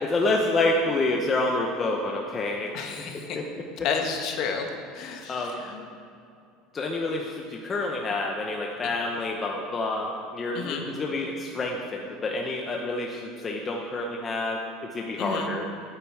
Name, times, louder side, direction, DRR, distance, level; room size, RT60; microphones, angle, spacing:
voice 1, 0.0-3.1 3.3-3.4 5.3-5.6 6.7-14.6 14.9-15.6, left 2 dB, 20° left, 0 dB, 0.8 m, -28 dB
voice 2, 2.7-3.4 3.8-4.7 4.9-5.8 10.5-10.8 15.2-15.5, left 6 dB, 40° left, 3 dB, 1.4 m, -31 dB
16.5 x 9.0 x 4.7 m, 2.6 s
cardioid pair, 175°, 0 cm